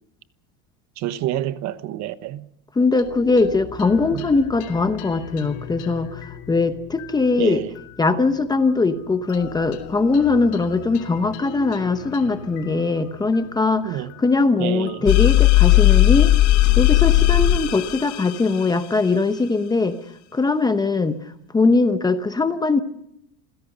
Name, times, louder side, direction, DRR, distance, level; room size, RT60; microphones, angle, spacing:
voice 1, 1.0-2.5 4.1-4.3 7.4-7.7 13.8-14.1 14.6-15.1, right 13 dB, 50° right, 1.2 m, -28 dB
voice 2, 2.8-7.6 8.0-16.3 16.8-20.0 20.3-21.2 21.5-22.8, left 3 dB, 10° left, 0.9 m, -21 dB
sound 1, 3.0-17.7, left 8 dB, 75° left, 3.0 m, -41 dB
sound 2, 15.1-18.6, left 15 dB, 50° left, 1.3 m, -16 dB
27.5 x 16.5 x 6.6 m
cardioid pair, 160°, 37 cm